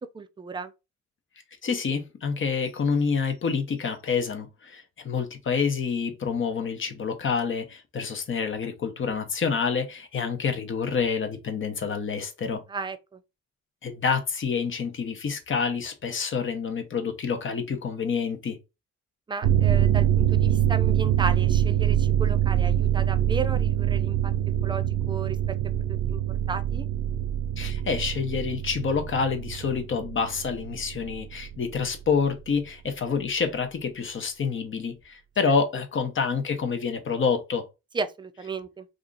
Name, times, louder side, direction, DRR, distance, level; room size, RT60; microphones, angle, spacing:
voice 1, 0.1-0.7 12.7-13.2 19.3-24.3 24.6-25.6 26.1-26.2 26.5-26.9 37.9-38.9, right 4 dB, 15° right, 0.4 m, -34 dB
voice 2, 1.6-12.6 13.8-18.6 27.6-37.7, left 5 dB, 40° left, 0.8 m, -28 dB
sound 1, 19.4-31.5 31.9-32.0, right 11 dB, 80° right, 0.6 m, -24 dB
2.8 x 2.5 x 3.7 m
cardioid pair, 90°, 30 cm